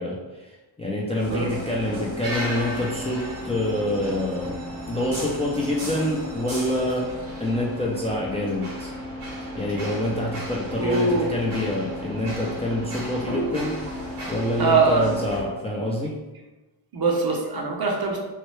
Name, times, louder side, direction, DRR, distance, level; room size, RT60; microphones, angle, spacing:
voice 1, 0.0-4.5 4.9-7.1 7.4-8.9 9.6-16.1, left 1 dB, 15° left, -4 dB, 0.4 m, -26 dB
sound 1, 1.2-15.4, equal, 85° right, 1.3 m, -34 dB
voice 2, 10.8-11.3 14.6-15.1 16.9-18.2, right 4 dB, 45° right, 0 dB, 0.7 m, -22 dB
3.1 x 2.2 x 3.1 m, 1.1 s
cardioid pair, 90°, 50 cm